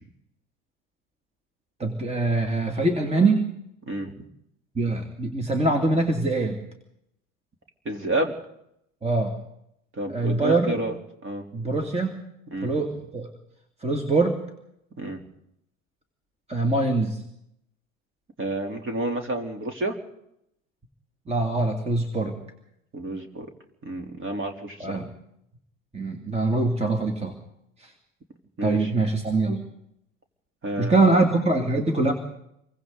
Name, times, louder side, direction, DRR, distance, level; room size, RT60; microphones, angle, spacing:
voice 1, 1.8-3.4 4.8-6.6 9.0-9.3 10.1-10.8 11.5-12.2 12.6-13.3 13.8-14.4 16.5-17.2 21.3-22.3 24.8-25.1 25.9-27.3 27.8-27.9 28.6-29.6 30.8-32.1, right 2 dB, 15° right, 4 dB, 2.6 m, -23 dB
voice 2, 3.9-4.2 7.9-8.4 9.9-10.9 11.2-11.4 12.5-12.7 15.0-15.2 18.4-20.0 22.9-23.5 23.8-25.0 28.6-28.9 30.6-31.2, right 1 dB, 30° right, 4 dB, 3.7 m, -30 dB
27.5 x 23.5 x 4.1 m, 0.79 s
hypercardioid pair, 75°, 40 cm